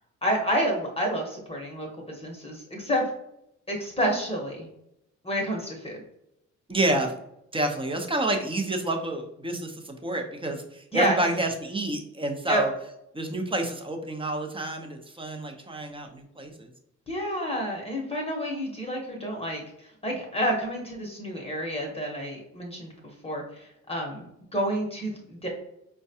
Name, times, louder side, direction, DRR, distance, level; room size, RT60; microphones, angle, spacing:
voice 1, 0.2-3.1 3.7-4.7 5.2-6.0 10.9-11.2 12.5-12.6 17.1-19.6 20.0-22.9 23.2-25.5, equal, 20° left, 0 dB, 0.9 m, -29 dB
voice 2, 6.7-7.1 7.5-12.7 13.1-16.7, right 1 dB, 15° right, 3 dB, 0.7 m, -29 dB
4.5 x 2.2 x 2.7 m, 0.82 s
cardioid pair, 90°, 30 cm